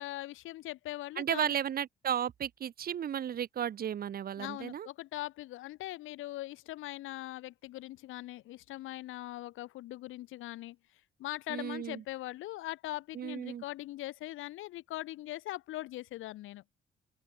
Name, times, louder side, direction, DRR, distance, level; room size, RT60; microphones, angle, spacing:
voice 1, 0.0-1.5 4.4-10.8 11.2-16.6, left 16 dB, 90° left, 1.7 m, -41 dB
voice 2, 1.2-4.9 11.5-12.0 13.1-13.6, right 9 dB, 50° right, 0.8 m, -34 dB
open air
cardioid pair, 90°, 20 cm